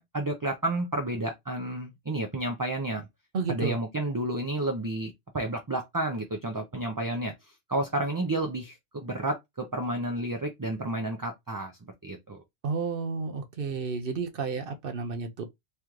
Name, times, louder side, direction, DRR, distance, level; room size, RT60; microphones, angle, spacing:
voice 1, 0.0-3.1 3.5-7.3 7.7-11.7 12.0-12.4, right 1 dB, 25° right, 0.4 m, -31 dB
voice 2, 3.3-3.8 12.6-15.4, right 5 dB, 55° right, 0.8 m, -31 dB
3.3 x 3.0 x 3.7 m
omnidirectional pair, 1.2 m